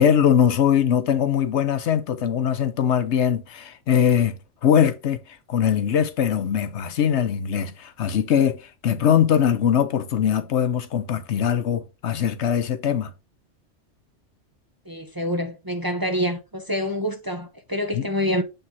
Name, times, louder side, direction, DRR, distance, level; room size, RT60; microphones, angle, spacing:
voice 1, 0.0-13.1 17.9-18.1, left 8 dB, 70° left, 1.0 m, -21 dB
voice 2, 14.9-18.4, equal, 20° right, 0.7 m, -26 dB
7.9 x 3.6 x 4.0 m
omnidirectional pair, 1.2 m